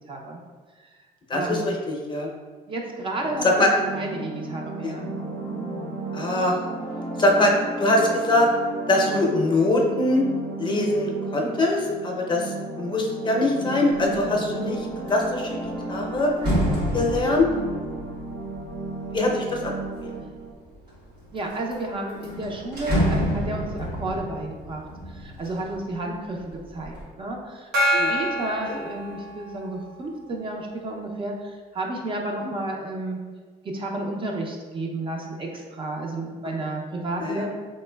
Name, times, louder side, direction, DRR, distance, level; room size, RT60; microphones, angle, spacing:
voice 1, 0.1-0.4 0.8-1.0 1.3-1.7 2.7-3.7 3.9-5.1 20.1-20.4 21.3-33.2 33.6-37.5, right 2 dB, 30° right, 0 dB, 0.4 m, -32 dB
voice 2, 1.3-2.3 3.6-3.7 4.8-4.9 6.1-6.6 7.2-7.5 7.8-8.5 8.9-10.3 10.6-15.6 15.9-16.3 16.9-17.5 19.1-19.7 27.9-28.1 28.7-28.8 32.4-32.5 37.2-37.4, left 2 dB, 30° left, 0 dB, 0.5 m, -23 dB
sound 1, 3.2-20.5, right 2 dB, 50° right, 0.9 m, -34 dB
sound 2, 14.0-14.3 14.7-20.1 20.7-21.4 21.7-21.8 22.1-26.0 26.4-27.0, equal, 70° right, 1.3 m, -29 dB
Gong, 27.7-29.8, equal, 90° right, 1.0 m, -26 dB
3.5 x 3.1 x 2.2 m, 1.5 s
cardioid pair, 110°, 17 cm